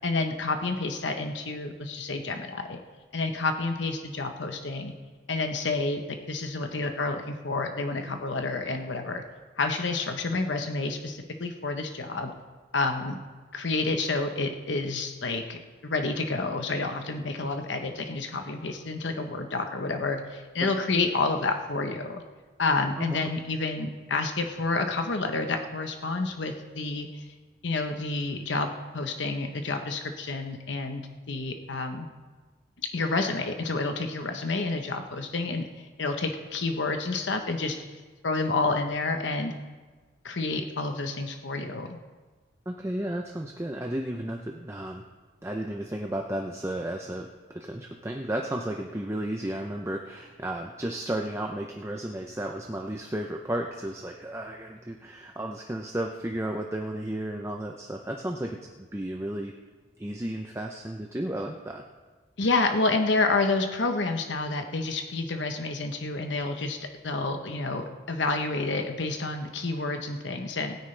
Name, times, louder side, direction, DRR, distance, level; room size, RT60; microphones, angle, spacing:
voice 1, 0.0-2.8 3.1-4.9 5.3-9.2 9.6-12.3 12.7-13.2 13.5-22.2 22.6-27.2 27.6-32.1 32.9-37.8 38.2-39.6 40.2-42.0 62.4-70.8, left 3 dB, 75° left, 5 dB, 1.0 m, -29 dB
voice 2, 23.0-23.3 42.7-45.0 45.4-59.5 60.0-61.8, right 1 dB, 15° right, 2 dB, 0.6 m, -33 dB
20.0 x 9.4 x 3.3 m, 1.4 s
head